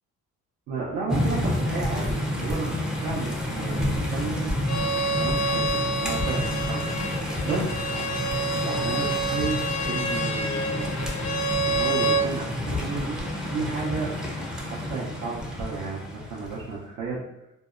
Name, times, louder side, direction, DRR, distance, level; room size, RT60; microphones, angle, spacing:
voice 1, 0.7-4.5 5.2-7.7 8.6-11.0 11.6-14.1 14.6-17.2, right 4 dB, 65° right, -7 dB, 0.6 m, -33 dB
sound 1, 1.1-16.6, left 1 dB, ahead, 0.4 m, -29 dB
Bowed string instrument, 4.7-12.3, right 2 dB, 75° left, 0.5 m, -28 dB
2.6 x 2.0 x 2.4 m, 0.88 s
cardioid pair, 90°, 30 cm